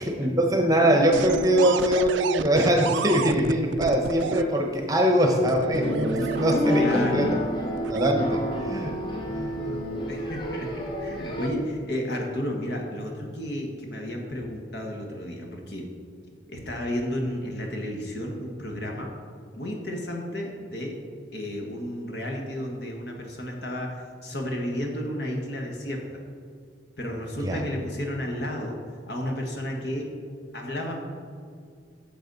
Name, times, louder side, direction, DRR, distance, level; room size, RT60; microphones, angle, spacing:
voice 1, 0.0-7.3 7.9-8.9 9.3-9.8 27.4-27.6, equal, 20° right, 2 dB, 0.9 m, -23 dB
sound 1, 1.1-4.4 5.5-7.1 7.8-8.1, right 7 dB, 75° right, 0.3 m, -31 dB
sound 2, 5.7-11.5, equal, 25° left, 0.9 m, -29 dB
voice 2, 6.8-7.3 10.1-15.9 16.5-19.1 19.5-21.0 21.3-26.0 27.0-30.2 30.5-31.0, equal, 65° left, 1 dB, 1.4 m, -32 dB
10.0 x 6.9 x 4.0 m, 2.2 s
head